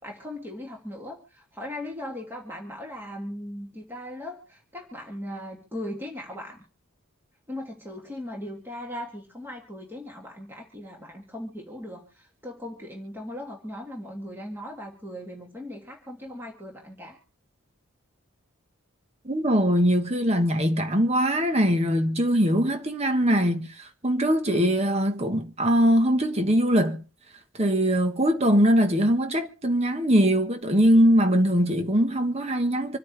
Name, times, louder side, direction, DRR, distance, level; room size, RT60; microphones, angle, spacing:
voice 1, 0.0-6.6 7.5-17.2, left 1 dB, 10° right, 2.5 m, -38 dB
voice 2, 19.2-27.0 27.6-33.0, equal, 30° right, 1.3 m, -22 dB
27.0 x 9.5 x 3.4 m
head